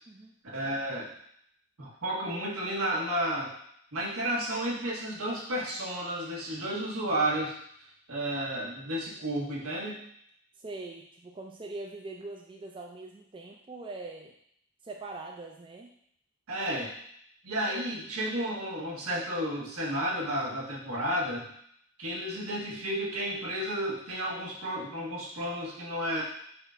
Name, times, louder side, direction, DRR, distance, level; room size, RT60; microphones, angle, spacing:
voice 1, 0.4-1.1 1.8-3.5 3.9-7.5 8.1-10.0 16.5-16.9 17.4-21.5 22.0-26.2, right 1 dB, 85° right, -4 dB, 1.3 m, -32 dB
voice 2, 10.6-14.3 14.8-15.9, right 2 dB, 25° right, 1 dB, 0.3 m, -42 dB
5.0 x 2.5 x 4.2 m, 0.68 s
head